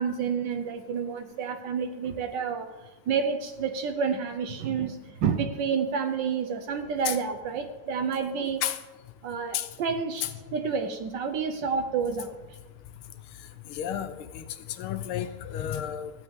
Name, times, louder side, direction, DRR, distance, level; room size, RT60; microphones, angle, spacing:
voice 1, 0.0-2.7 3.1-8.6 9.2-12.6, right 6 dB, 65° right, 7 dB, 1.2 m, -29 dB
voice 2, 13.7-14.4 14.8-16.1, left 10 dB, 80° left, 9 dB, 1.6 m, -31 dB
15.0 x 9.4 x 3.6 m, 1.1 s
omnidirectional pair, 2.4 m